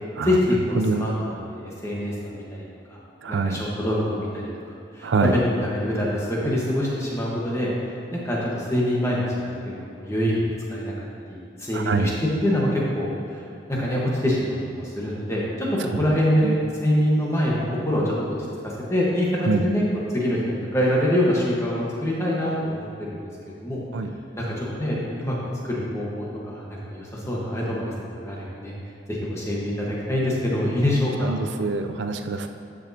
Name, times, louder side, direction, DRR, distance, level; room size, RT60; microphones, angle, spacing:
voice 1, 0.2-3.0 3.3-4.5 4.9-7.7 8.1-10.9 11.3-12.1 12.4-13.4 13.7-15.7 16.0-18.3 18.9-19.3 19.6-23.8 24.4-25.4 25.6-28.7 29.1-31.3, equal, 15° left, -5 dB, 1.3 m, -25 dB
voice 2, 0.8-1.1 3.2-3.6 5.0-5.3 11.7-12.1 16.0-16.1 16.4-16.5 19.5-19.7 23.9-24.1 31.2-32.5, right 4 dB, 80° right, 7 dB, 0.4 m, -25 dB
12.5 x 6.2 x 2.8 m, 2.4 s
head